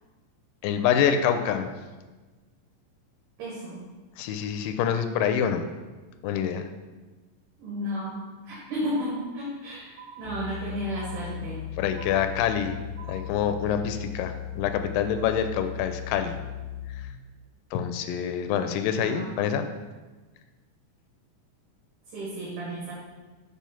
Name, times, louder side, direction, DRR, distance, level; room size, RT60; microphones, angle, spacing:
voice 1, 0.6-1.7 4.2-5.7 6.2-6.7 11.8-12.8 13.1-16.4 17.7-19.7, left 8 dB, 85° left, 8 dB, 2.2 m, -26 dB
voice 2, 3.4-3.8 7.6-11.7 18.9-19.4 22.1-22.9, equal, 70° right, -7 dB, 2.9 m, -33 dB
sound 1, 9.0-9.6 10.0-10.6 11.0-11.6 12.0-12.6 13.0-13.6, right 6 dB, 85° right, 2.4 m, -47 dB
sound 2, 10.2-17.0, left 11 dB, 45° right, 2.6 m, -37 dB
7.5 x 3.4 x 5.6 m, 1.3 s
omnidirectional pair, 4.0 m